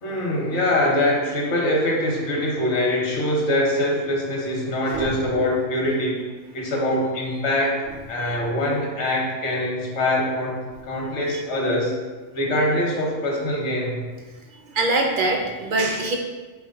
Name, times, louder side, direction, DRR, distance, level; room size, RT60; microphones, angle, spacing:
voice 1, 0.0-6.2 6.5-7.8 8.1-11.9 12.3-14.0, left 1 dB, 75° left, -2 dB, 1.3 m, -23 dB
voice 2, 14.5-16.2, right 2 dB, 55° right, 2 dB, 0.6 m, -23 dB
4.1 x 3.2 x 3.8 m, 1.3 s
omnidirectional pair, 1.2 m